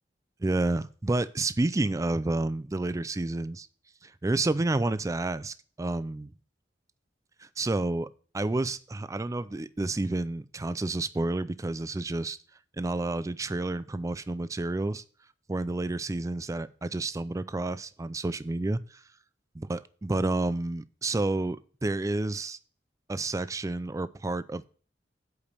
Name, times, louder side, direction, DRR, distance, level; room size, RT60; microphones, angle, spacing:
voice 1, 0.4-3.7 4.0-6.3 7.6-8.1 8.3-12.4 12.8-15.0 15.5-18.8 19.6-22.6 23.1-24.7, right 2 dB, 20° right, 15 dB, 0.4 m, -30 dB
8.2 x 5.1 x 6.7 m, 0.41 s
head